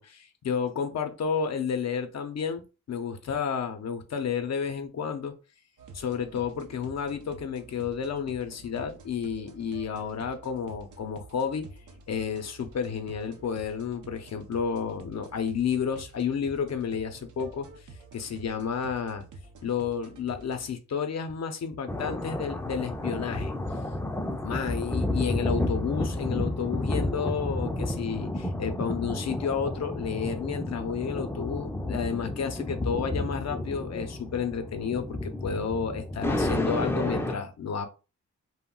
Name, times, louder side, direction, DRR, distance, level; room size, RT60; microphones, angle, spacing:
voice 1, 0.0-5.3 5.9-11.7 12.1-17.7 18.1-19.2 19.6-23.5 24.4-37.9, left 6 dB, 60° left, 0.5 m, -31 dB
sound 1, 5.8-20.7, right 3 dB, 85° right, 0.6 m, -49 dB
sound 2, 21.9-37.3, left 1 dB, 10° left, 0.4 m, -31 dB
2.3 x 2.1 x 3.6 m
cardioid pair, 65°, 30 cm